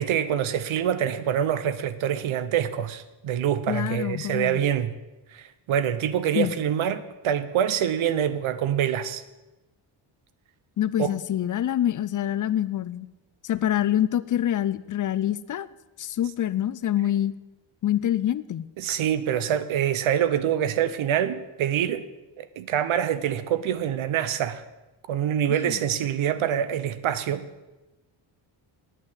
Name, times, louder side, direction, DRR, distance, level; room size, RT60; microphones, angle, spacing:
voice 1, 0.0-4.9 5.3-9.2 11.0-11.1 18.8-22.0 22.4-24.6 25.1-27.4, right 9 dB, 80° right, 13 dB, 1.0 m, -25 dB
voice 2, 3.7-4.6 6.3-6.5 10.8-13.1 13.4-15.7 16.0-17.3 17.8-18.7 25.5-25.8, left 11 dB, 40° left, 16 dB, 0.4 m, -26 dB
9.2 x 9.1 x 7.9 m, 1.1 s
wide cardioid pair, 150°, 48 cm